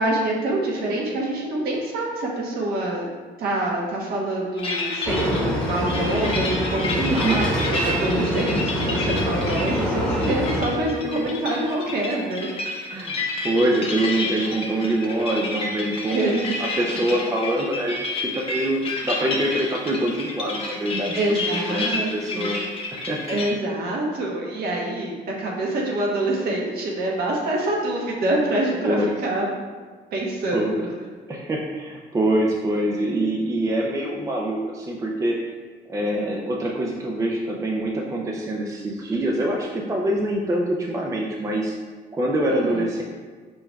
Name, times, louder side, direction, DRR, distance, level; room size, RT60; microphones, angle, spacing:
voice 1, 0.0-3.1 3.4-12.5 16.1-16.7 21.1-22.5 23.3-29.5 30.1-30.9 42.5-42.8, right 1 dB, 65° right, -2 dB, 1.2 m, -26 dB
sound 1, 4.6-23.5, left 2 dB, 35° left, 0.8 m, -30 dB
sound 2, 5.0-10.6, equal, 5° left, 1.1 m, -25 dB
voice 2, 7.0-7.4 12.9-21.4 21.7-22.6 22.9-23.2 28.8-29.1 30.5-30.9 31.3-35.4 35.9-41.8 42.1-43.0, right 1 dB, 20° right, -1 dB, 0.5 m, -25 dB
5.2 x 4.3 x 2.3 m, 1.5 s
cardioid pair, 110°, 17 cm